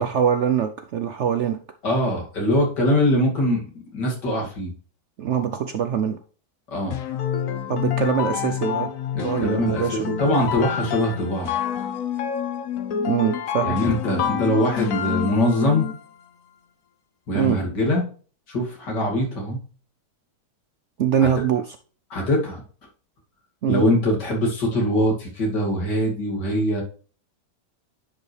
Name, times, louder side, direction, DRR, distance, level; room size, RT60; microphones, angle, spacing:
voice 1, 0.0-1.6 5.2-6.2 7.7-10.2 13.1-13.8 17.3-17.6 21.0-21.6 23.6-23.9, right 8 dB, 65° right, 8 dB, 0.7 m, -23 dB
voice 2, 1.8-3.6 3.9-4.7 6.7-7.0 9.2-11.9 13.6-15.9 17.3-18.0 18.5-19.6 21.2-21.3 22.1-22.6 23.7-26.8, left 1 dB, 85° left, 0 dB, 3.0 m, -22 dB
sound 1, 6.9-16.1, left 8 dB, 60° left, 1.1 m, -27 dB
10.0 x 5.3 x 3.3 m, 0.39 s
omnidirectional pair, 1.8 m